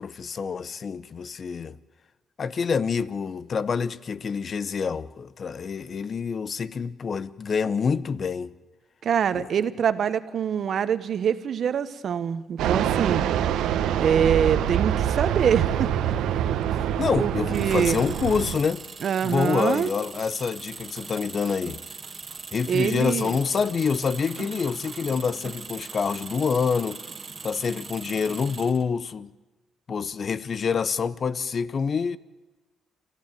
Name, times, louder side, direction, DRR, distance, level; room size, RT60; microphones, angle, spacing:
voice 1, 0.0-1.8 2.4-8.5 9.3-9.5 16.7-18.8 19.2-21.8 22.5-27.0 27.4-29.3 29.9-32.2, left 5 dB, 45° left, 0.8 m, -27 dB
voice 2, 9.0-13.2 14.0-16.5 17.2-18.0 19.0-19.9 22.7-23.3, right 8 dB, 60° right, 1.2 m, -25 dB
Fixed-wing aircraft airplane, 12.6-18.6, right 10 dB, 85° right, 1.2 m, -25 dB
Engine, 17.5-29.1, right 5 dB, 35° right, 1.8 m, -40 dB
27.5 x 14.5 x 9.2 m
cardioid pair, 90°, 0 cm